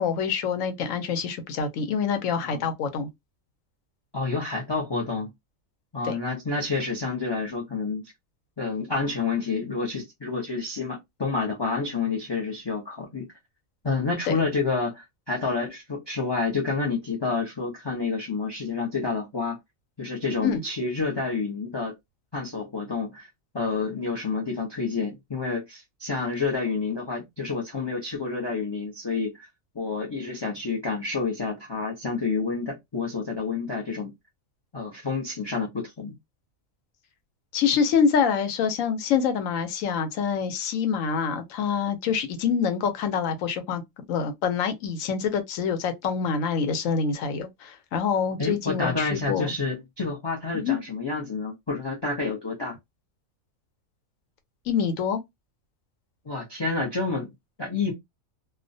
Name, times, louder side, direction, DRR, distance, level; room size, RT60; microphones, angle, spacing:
voice 1, 0.0-3.1 6.0-6.2 14.3-14.4 20.4-20.6 37.5-43.8 44.1-49.5 50.5-50.8 54.7-55.2, left 6 dB, 80° left, 1.0 m, -26 dB
voice 2, 4.1-5.3 5.9-8.0 8.6-13.3 13.8-19.6 20.0-21.9 22.3-23.3 23.5-29.5 29.7-34.1 34.7-36.1 48.4-52.8 56.2-57.3 57.6-57.9, left 4 dB, 40° left, 0.3 m, -29 dB
2.4 x 2.1 x 2.6 m
omnidirectional pair, 1.4 m